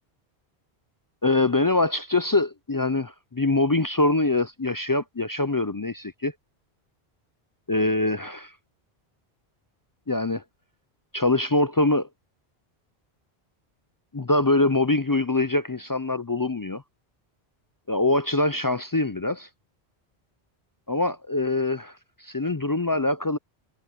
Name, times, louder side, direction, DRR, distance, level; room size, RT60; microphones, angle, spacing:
voice 1, 1.2-6.3 7.7-8.5 10.1-10.4 11.1-12.1 14.1-16.8 17.9-19.5 20.9-23.4, left 2 dB, 35° left, 0.3 m, -24 dB
omnidirectional pair, 1.1 m